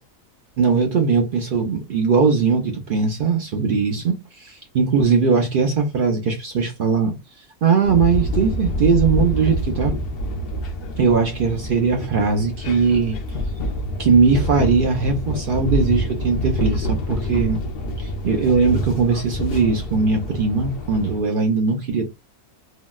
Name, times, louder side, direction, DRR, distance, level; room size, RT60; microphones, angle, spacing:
voice 1, 0.6-7.2 7.6-9.9 11.0-13.2 14.0-17.6 18.0-22.0, right 5 dB, 70° right, 0.5 m, -20 dB
sound 1, 7.9-21.2, left 1 dB, 60° left, 0.6 m, -27 dB
3.8 x 2.0 x 2.3 m
omnidirectional pair, 1.5 m